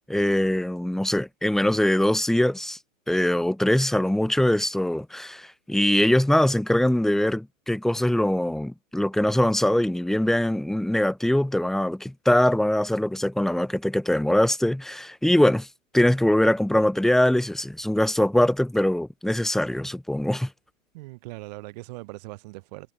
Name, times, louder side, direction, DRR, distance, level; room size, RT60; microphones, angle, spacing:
voice 1, 0.1-2.8 3.1-15.7 15.9-20.5, left 1 dB, ahead, 3.4 m, -22 dB
voice 2, 20.9-22.9, right 23 dB, 30° right, 5.3 m, -40 dB
figure-of-eight pair, 135°, 41 cm